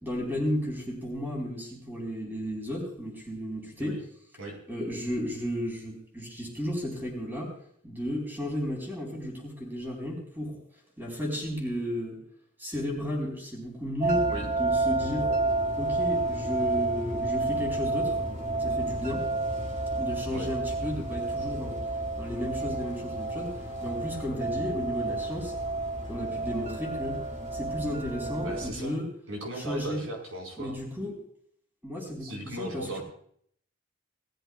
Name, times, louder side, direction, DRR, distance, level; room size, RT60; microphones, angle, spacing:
voice 1, 0.0-4.0 4.7-7.6 7.8-10.6 11.0-12.2 12.6-14.3 14.6-15.3 15.8-18.2 18.6-19.3 20.0-21.8 22.1-25.5 26.1-27.2 27.5-29.1 29.6-30.0 30.6-31.1 31.8-33.0, equal, 10° right, 0 dB, 4.2 m, -33 dB
sound 1, 14.0-28.7, right 2 dB, 35° right, 2.4 m, -30 dB
voice 2, 28.4-29.0 29.3-30.8 32.2-33.0, right 1 dB, 85° right, 0 dB, 4.7 m, -37 dB
19.5 x 13.5 x 2.4 m, 0.64 s
head